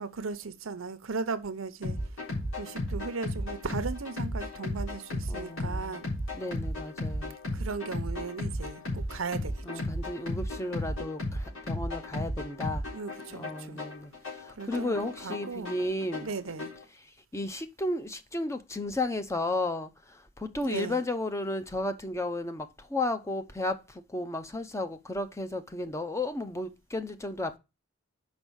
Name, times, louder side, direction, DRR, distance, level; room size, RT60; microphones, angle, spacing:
voice 1, 0.0-2.0 2.6-6.1 7.5-9.8 12.9-13.8 14.6-14.9 15.2-15.8 16.2-16.7 20.6-21.0, right 4 dB, 80° right, 0.8 m, -37 dB
sound 1, 1.8-16.8, left 1 dB, 90° left, 3.7 m, -34 dB
voice 2, 5.3-6.0 6.3-7.3 9.6-12.8 13.3-14.1 14.4-16.3 17.3-27.6, left 2 dB, 15° left, 0.6 m, -33 dB
5.4 x 5.2 x 6.2 m
head